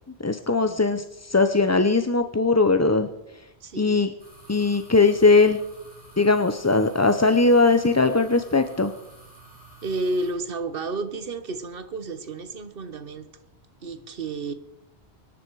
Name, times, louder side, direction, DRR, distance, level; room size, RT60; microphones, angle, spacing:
voice 1, 0.2-3.1 3.8-4.1 4.5-5.6 6.2-8.9, left 3 dB, 20° left, 0.5 m, -20 dB
voice 2, 3.6-4.1 9.8-13.3 13.8-14.5, right 2 dB, 55° right, 1.3 m, -31 dB
sound 1, 4.2-10.3, right 3 dB, 10° right, 6.2 m, -50 dB
25.0 x 9.9 x 4.7 m
omnidirectional pair, 1.1 m